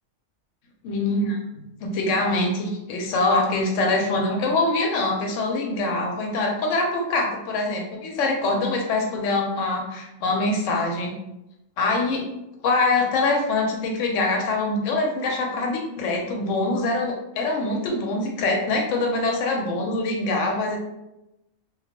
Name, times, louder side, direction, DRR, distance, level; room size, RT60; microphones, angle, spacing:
voice 1, 0.8-11.1 11.8-12.2 12.6-20.8, left 2 dB, 70° left, 1 dB, 0.9 m, -24 dB
2.3 x 2.2 x 2.8 m, 0.92 s
omnidirectional pair, 1.4 m